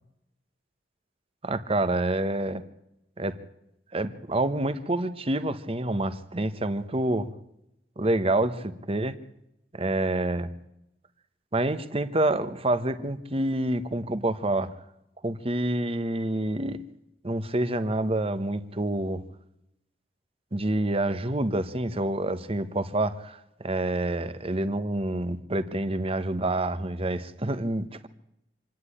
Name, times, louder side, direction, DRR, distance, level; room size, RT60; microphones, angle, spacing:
voice 1, 1.4-2.6 3.2-3.4 3.9-7.3 8.0-9.2 9.7-10.5 11.5-14.7 15.2-16.8 17.2-19.2 20.5-28.1, right 1 dB, 30° right, 12 dB, 1.1 m, -27 dB
26.0 x 10.0 x 9.9 m, 0.84 s
head